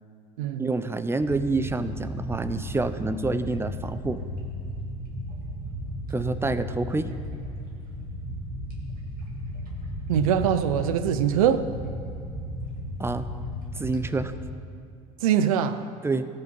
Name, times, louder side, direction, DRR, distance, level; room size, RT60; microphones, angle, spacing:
voice 1, 0.6-4.2 6.1-7.1 13.0-13.3 13.8-14.3 16.0-16.3, right 3 dB, 15° right, 0.6 m, -27 dB
sound 1, 1.2-14.4, equal, 55° right, 2.4 m, -35 dB
voice 2, 10.1-11.7 15.2-15.8, right 9 dB, 80° right, 0.6 m, -23 dB
16.5 x 5.6 x 5.4 m
hypercardioid pair, 75°, 18 cm